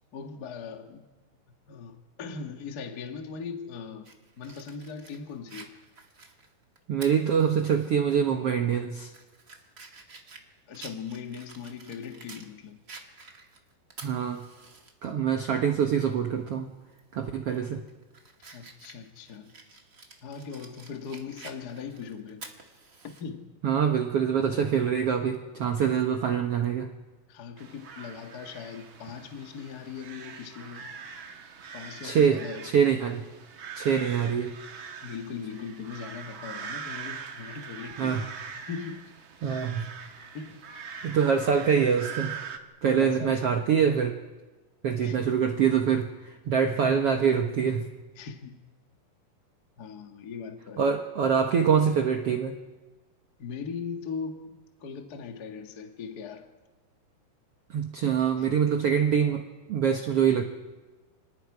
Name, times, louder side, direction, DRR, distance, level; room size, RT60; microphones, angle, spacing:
voice 1, 0.1-1.0 1.7-4.1 4.4-5.7 10.7-12.8 18.5-19.5 20.2-22.4 23.2-23.5 27.3-30.9 31.7-32.7 34.1-34.3 35.0-38.2 38.5-39.1 40.3-41.1 43.0-43.4 45.0-45.2 48.1-48.6 49.8-50.8 53.4-56.5 58.4-58.5, left 6 dB, 45° left, 1.2 m, -39 dB
Fire, 4.0-7.9 8.3-8.4 8.9-12.5 12.9-14.9 15.3-15.4 16.9-17.2 17.6-23.2, right 3 dB, 40° right, 1.2 m, -49 dB
voice 2, 6.9-9.1 14.0-14.5 15.0-16.7 17.1-17.8 23.6-26.9 32.0-33.3 33.7-34.6 38.0-38.3 39.4-39.9 41.0-42.4 42.8-44.1 44.8-47.9 50.8-52.6 57.7-60.4, right 7 dB, 85° right, 1.3 m, -25 dB
sound 1, 27.6-42.6, right 6 dB, 55° right, 1.4 m, -42 dB
29.0 x 26.0 x 4.9 m
omnidirectional pair, 4.5 m